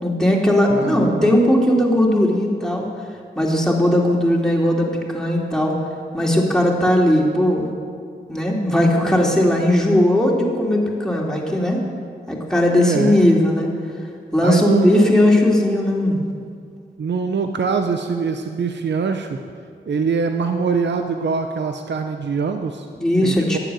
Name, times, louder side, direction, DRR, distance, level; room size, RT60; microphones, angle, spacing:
voice 1, 0.0-2.9 3.3-4.9 5.1-5.7 6.1-7.7 8.3-11.8 12.3-13.7 14.3-16.2 23.0-23.6, left 1 dB, 5° left, -2 dB, 3.1 m, -18 dB
voice 2, 0.7-1.3 12.8-13.2 14.4-15.1 17.0-19.4 19.9-22.9 23.2-23.6, right 5 dB, 70° right, 6 dB, 0.8 m, -23 dB
11.5 x 8.0 x 9.0 m, 2.2 s
cardioid pair, 45°, 19 cm